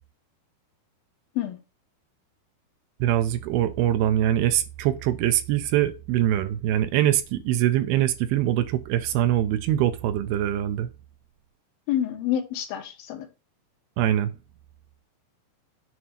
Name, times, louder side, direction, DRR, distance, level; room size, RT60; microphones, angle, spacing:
voice 1, 3.0-10.9 14.0-14.3, right 12 dB, 80° right, 2.4 m, -23 dB
voice 2, 11.9-13.3, left 11 dB, 75° left, 2.6 m, -28 dB
7.8 x 2.7 x 5.8 m
omnidirectional pair, 4.6 m